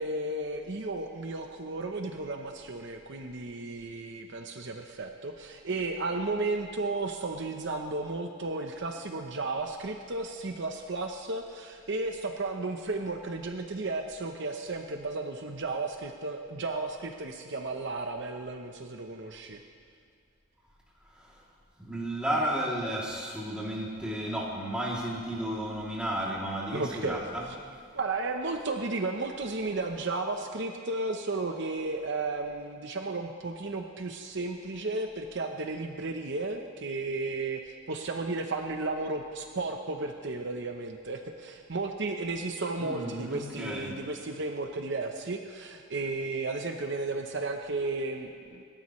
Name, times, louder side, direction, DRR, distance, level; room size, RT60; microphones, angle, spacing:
voice 1, 0.0-19.6 26.7-27.2 27.9-48.6, right 3 dB, 55° right, 4 dB, 0.9 m, -34 dB
voice 2, 21.8-27.4 42.8-44.0, right 1 dB, 5° right, -6 dB, 2.8 m, -33 dB
28.0 x 12.5 x 3.2 m, 2.2 s
head